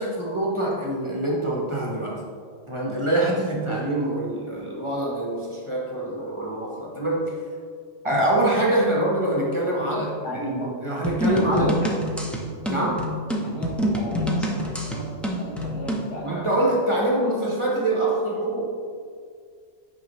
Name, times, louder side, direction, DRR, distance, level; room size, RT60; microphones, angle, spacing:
voice 1, 0.0-2.2 2.7-7.4 8.0-11.8 12.7-13.2 16.2-18.7, right 1 dB, 25° right, -3 dB, 1.0 m, -25 dB
voice 2, 9.8-11.0 11.3-11.7 13.4-16.5, equal, 75° left, -3 dB, 1.8 m, -35 dB
sound 1, 11.0-16.1, equal, ahead, 0.5 m, -26 dB
9.2 x 5.3 x 3.1 m, 2.1 s
omnidirectional pair, 1.2 m